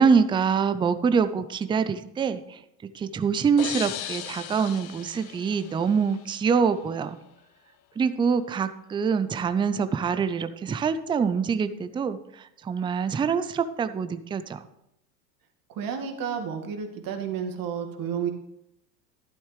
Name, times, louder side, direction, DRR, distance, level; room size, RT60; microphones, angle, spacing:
voice 1, 0.0-2.6 2.9-7.2 8.0-14.6, right 6 dB, 10° right, 12 dB, 0.4 m, -25 dB
sound 1, 3.6-6.3, left 11 dB, 45° left, 1.0 m, -37 dB
voice 2, 15.7-18.3, right 7 dB, 45° right, 4 dB, 2.1 m, -31 dB
12.0 x 11.5 x 3.3 m, 0.81 s
hypercardioid pair, 85°, 49 cm